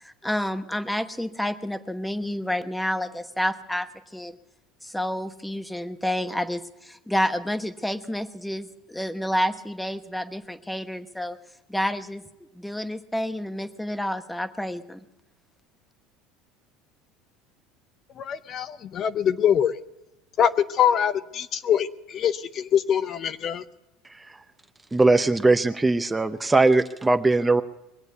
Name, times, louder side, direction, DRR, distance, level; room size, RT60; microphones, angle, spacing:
voice 1, 0.2-4.4 4.8-11.4 11.7-12.2 12.6-15.0, equal, 5° left, 10 dB, 1.0 m, -29 dB
voice 2, 18.2-19.8 20.4-23.6, left 9 dB, 45° left, 12 dB, 0.7 m, -24 dB
voice 3, 24.9-27.6, right 3 dB, 15° right, 9 dB, 0.7 m, -20 dB
22.0 x 8.1 x 8.1 m, 0.98 s
supercardioid pair, 110°, 0 cm